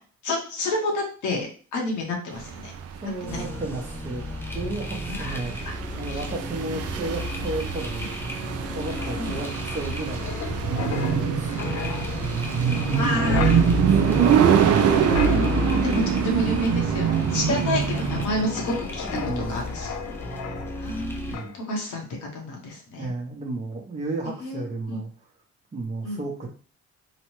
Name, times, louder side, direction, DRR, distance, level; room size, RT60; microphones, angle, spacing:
voice 1, 0.2-2.7 3.0-3.4 5.1-5.4 5.6-6.2 6.7-6.8 9.2-9.4 11.5-11.7 12.9-13.6 15.2-19.1 19.4-19.9 20.7-23.1 24.4-25.0 26.0-26.2, left 1 dB, 75° left, 1 dB, 1.0 m, -30 dB
sound 1, 2.4-18.2, right 8 dB, 55° right, 0.4 m, -24 dB
voice 2, 3.0-4.3 4.5-8.3 8.7-10.5 11.0-11.9 12.6-13.7 17.4-17.8 19.0-19.6 21.2-21.5 23.0-25.1 25.7-26.5, right 2 dB, 25° right, 0 dB, 0.7 m, -33 dB
sound 2, 3.3-21.4, left 1 dB, 10° left, 0.5 m, -35 dB
Wind, 8.6-21.0 21.3-21.6, left 3 dB, 55° left, 0.5 m, -32 dB
3.0 x 2.1 x 3.0 m, 0.39 s
cardioid pair, 90°, 30 cm